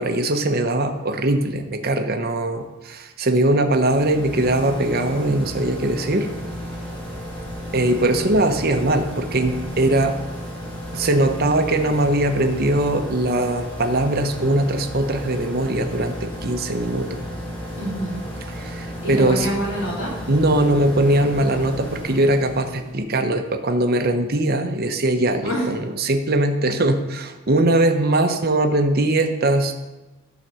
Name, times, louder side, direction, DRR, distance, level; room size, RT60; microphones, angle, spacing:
voice 1, 0.0-6.3 7.7-10.2 10.9-17.2 18.5-19.5 20.3-29.7, right 1 dB, 45° right, 6 dB, 0.8 m, -21 dB
sound 1, 3.6-23.0, equal, 25° left, 3.6 m, -33 dB
voice 2, 17.8-18.2 19.0-20.1 25.4-25.7, right 1 dB, 65° left, -5 dB, 3.5 m, -26 dB
12.0 x 4.1 x 6.9 m, 1.1 s
head